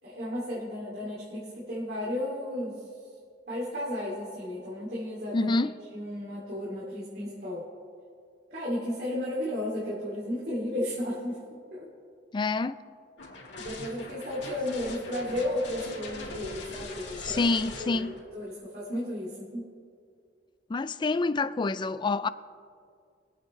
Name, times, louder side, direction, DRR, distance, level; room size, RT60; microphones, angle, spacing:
voice 1, 0.0-2.8 3.5-5.6 5.9-7.6 8.5-11.4 11.7-11.9 13.6-19.6, left 1 dB, 60° right, 2.6 m, -34 dB
voice 2, 5.3-5.7 12.3-12.8 17.2-18.1 20.7-22.3, left 3 dB, 25° left, 0.3 m, -27 dB
sound 1, 13.2-18.2, left 2 dB, 80° left, 2.6 m, -42 dB
23.5 x 8.7 x 3.2 m
head